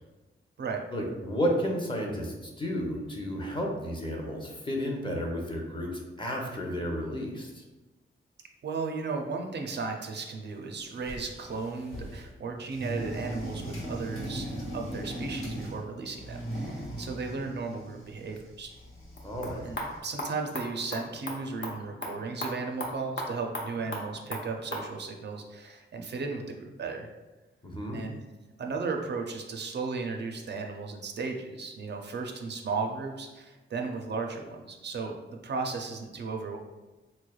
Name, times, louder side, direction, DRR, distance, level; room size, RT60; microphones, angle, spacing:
voice 1, 0.9-7.6 19.2-19.7 27.6-28.0, equal, 25° left, 0 dB, 0.6 m, -32 dB
voice 2, 8.6-18.7 19.6-27.1 27.9-28.2 28.6-36.6, right 4 dB, 55° right, 3 dB, 0.4 m, -35 dB
sound 1, 10.8-12.3 12.7-15.8 16.1-20.0, equal, 90° left, 1.3 m, -39 dB
sound 2, 19.1-24.9, left 1 dB, 65° left, 0.8 m, -38 dB
4.2 x 3.1 x 2.3 m, 1.2 s
wide cardioid pair, 145°, 21 cm